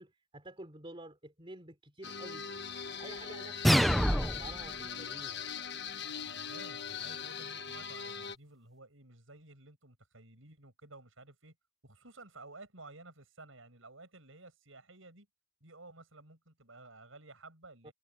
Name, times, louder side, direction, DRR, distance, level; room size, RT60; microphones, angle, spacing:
voice 1, 0.0-2.5 3.0-5.5 17.8-17.9, right 1 dB, 25° right, 3.3 m, -49 dB
sound 1, 2.0-8.4, left 6 dB, 55° left, 1.4 m, -41 dB
sound 2, 3.6-4.6, equal, ahead, 0.5 m, -26 dB
voice 2, 6.3-11.5 11.8-15.3 15.6-17.9, right 2 dB, 70° right, 7.8 m, -54 dB
head